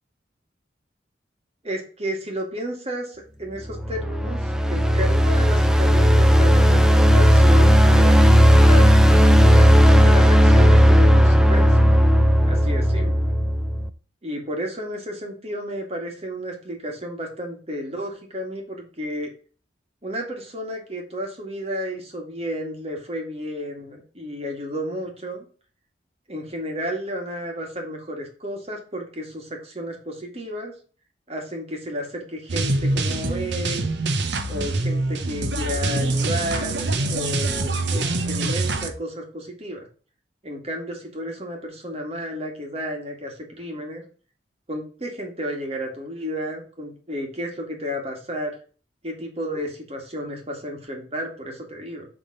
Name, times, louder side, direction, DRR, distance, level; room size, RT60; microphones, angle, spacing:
voice 1, 1.6-8.3 8.6-8.9 9.6-11.9 12.5-13.3 14.2-19.3 20.0-25.5 26.3-30.7 31.3-33.9 34.5-39.9 40.4-44.0 44.7-48.5 49.0-52.1, equal, 35° right, 1 dB, 2.1 m, -32 dB
sound 1, 3.7-13.9, equal, 5° right, 0.5 m, -15 dB
sound 2, 32.5-38.9, right 2 dB, 75° right, 1.0 m, -24 dB
7.2 x 3.7 x 5.4 m, 0.39 s
head